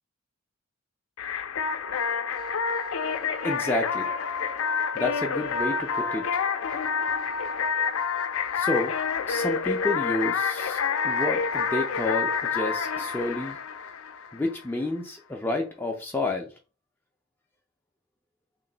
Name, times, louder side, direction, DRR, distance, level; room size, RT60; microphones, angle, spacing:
sound 1, 1.2-14.6, left 6 dB, 75° left, 0.4 m, -28 dB
voice 1, 3.4-4.1 5.0-6.4 8.5-8.9 9.3-13.6 14.3-16.5, left 2 dB, 10° left, 0.4 m, -30 dB
3.0 x 2.5 x 3.8 m
head